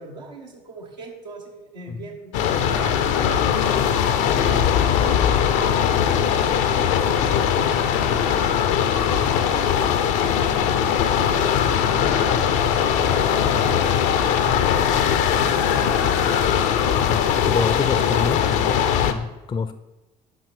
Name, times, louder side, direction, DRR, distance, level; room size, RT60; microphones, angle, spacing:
voice 1, 0.0-2.4 2.6-3.9 4.3-4.7 5.5-8.6 8.9-9.4 9.8-10.3 11.1-16.6, right 2 dB, 90° right, -2 dB, 1.3 m, -40 dB
sound 1, 2.3-19.1, left 8 dB, 70° left, 0.6 m, -20 dB
voice 2, 17.1-19.7, left 5 dB, 25° left, 11 dB, 0.5 m, -28 dB
6.1 x 5.1 x 5.0 m, 1.0 s
hypercardioid pair, 60°, 21 cm